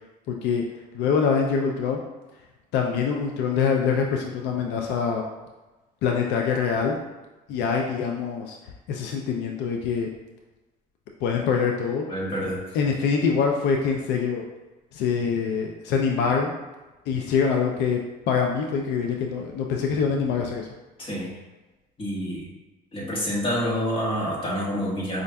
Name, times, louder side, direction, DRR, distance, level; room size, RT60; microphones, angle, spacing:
voice 1, 0.3-0.6 0.9-2.0 2.7-5.2 6.0-7.0 7.5-8.6 8.9-10.1 11.2-12.1 12.7-14.4 14.9-16.5 17.1-18.0 18.3-20.7, left 6 dB, 85° left, 1 dB, 0.4 m, -24 dB
voice 2, 12.1-12.6 21.0-21.3 22.0-22.5 22.9-25.2, equal, 30° left, -5 dB, 1.3 m, -27 dB
5.1 x 2.5 x 2.2 m, 1.1 s
cardioid pair, 110°, 17 cm